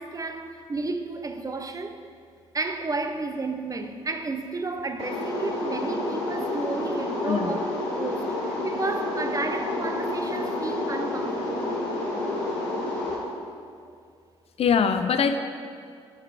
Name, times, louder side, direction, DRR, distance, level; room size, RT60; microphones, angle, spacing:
voice 1, 0.0-2.0 2.5-11.9, right 3 dB, 25° right, 0.5 m, -32 dB
sound 1, 5.0-13.2, left 2 dB, 85° left, 0.9 m, -29 dB
voice 2, 7.3-7.6 14.6-15.4, left 6 dB, 45° left, 0.4 m, -22 dB
6.3 x 3.8 x 4.7 m
hypercardioid pair, 45°, 14 cm